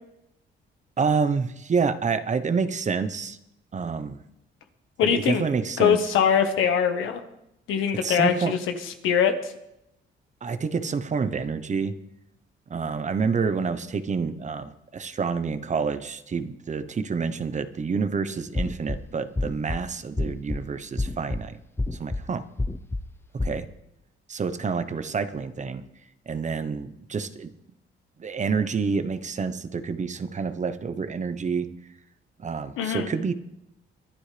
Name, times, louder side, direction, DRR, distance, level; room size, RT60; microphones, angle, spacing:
voice 1, 1.0-3.4 3.7-4.2 5.0-6.1 8.0-8.5 10.4-11.9 12.7-21.6 21.9-22.4 23.4-23.6 24.3-25.8 26.3-27.5 28.2-31.7 32.4-33.3, right 5 dB, 35° right, 11 dB, 1.0 m, -28 dB
voice 2, 5.0-5.5 5.8-7.2 7.7-8.6 9.0-9.3 32.8-33.1, left 7 dB, 85° left, 6 dB, 1.5 m, -22 dB
sound 1, 18.5-19.0 19.4-19.8 20.2-20.6 21.0-21.4 21.8-22.2 22.6-23.0 23.4-23.6, left 2 dB, 10° left, 0.7 m, -27 dB
22.5 x 11.0 x 3.4 m, 0.84 s
cardioid pair, 90°, 20 cm